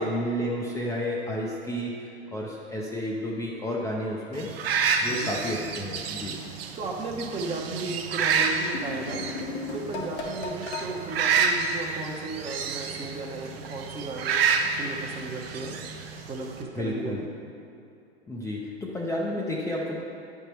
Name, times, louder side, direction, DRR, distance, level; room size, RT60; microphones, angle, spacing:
voice 1, 0.0-4.5 5.0-6.3 16.8-17.2 18.3-20.0, equal, 10° left, -4 dB, 0.6 m, -31 dB
sound 1, 4.3-16.6, right 5 dB, 65° right, 0.7 m, -29 dB
voice 2, 6.8-9.2 9.7-15.7 16.3-17.3, right 3 dB, 20° right, 0 dB, 0.8 m, -35 dB
sound 2, 8.7-10.9, left 3 dB, 80° left, 1.1 m, -34 dB
9.8 x 3.6 x 4.4 m, 2.7 s
figure-of-eight pair, 100°, 33 cm